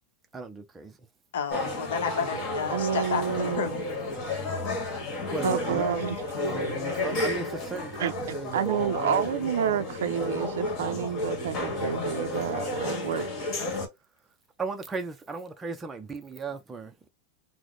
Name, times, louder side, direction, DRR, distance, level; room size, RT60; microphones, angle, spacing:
voice 1, 0.3-1.1 5.3-5.9 6.3-8.8 14.6-17.1, right 4 dB, 10° right, 0.4 m, -36 dB
voice 2, 1.3-3.8, left 7 dB, 85° left, 0.7 m, -31 dB
sound 1, 1.5-13.9, left 2 dB, 30° left, 1.4 m, -32 dB
voice 3, 2.7-3.8 5.4-6.2 8.0-13.6, right 8 dB, 90° right, 0.3 m, -29 dB
3.1 x 2.0 x 3.8 m
supercardioid pair, 160°, 0 cm